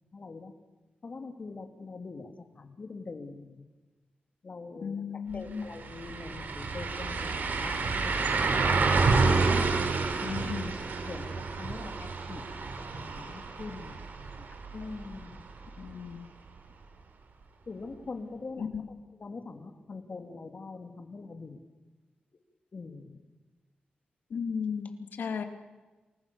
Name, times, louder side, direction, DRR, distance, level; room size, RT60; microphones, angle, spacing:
voice 1, 0.1-0.5 1.0-3.6 4.4-8.1 8.7-9.7 11.1-11.9 12.3-14.5 14.7-15.4 17.7-18.7 19.2-21.6 22.7-23.2, left 3 dB, 50° left, 6 dB, 2.9 m, -43 dB
voice 2, 4.8-5.7 10.2-10.7 15.8-16.3 18.6-18.9 24.3-25.4, left 6 dB, 90° left, 7 dB, 2.1 m, -35 dB
sound 1, 5.3-5.4 5.7-15.5 15.9-16.0 18.7-18.8, right 4 dB, 70° right, 3.3 m, -29 dB
28.5 x 20.5 x 7.1 m, 1.2 s
wide cardioid pair, 90°, 3 cm